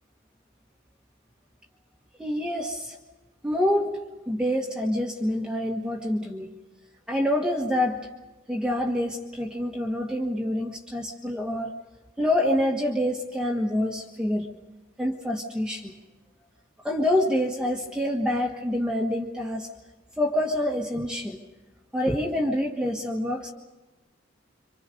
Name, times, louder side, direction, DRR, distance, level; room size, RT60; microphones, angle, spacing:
voice 1, 2.2-3.0 3.4-6.5 7.1-8.0 8.5-11.7 12.2-14.5 15.0-15.9 16.8-19.7 20.2-21.4 21.9-23.5, left 1 dB, 5° right, -1 dB, 1.5 m, -26 dB
27.5 x 26.0 x 5.3 m, 1.1 s
head